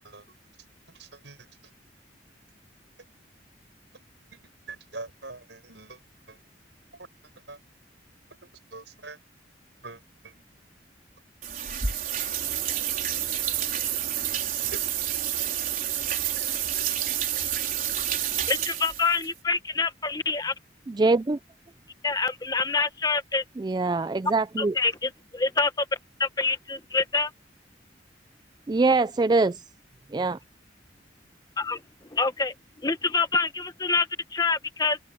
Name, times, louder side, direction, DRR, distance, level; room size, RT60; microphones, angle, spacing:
voice 1, 1.0-1.5 4.7-6.0 6.3-6.4 7.5-7.6 8.7-9.2 9.8-10.4 12.3-12.5 13.6-13.7 14.6-14.8 25.0-25.1, right 3 dB, 75° right, 5.4 m, -43 dB
sound 1, 11.4-19.3, right 10 dB, 50° right, 4.3 m, -29 dB
voice 2, 18.5-20.5 22.0-23.4 24.6-25.9 26.2-27.3 31.6-31.8 32.1-32.5 32.8-35.0, left 4 dB, 20° left, 1.1 m, -26 dB
voice 3, 20.9-21.4 23.6-24.7 28.7-29.6 30.1-30.4, right 3 dB, 25° right, 0.3 m, -23 dB
open air
head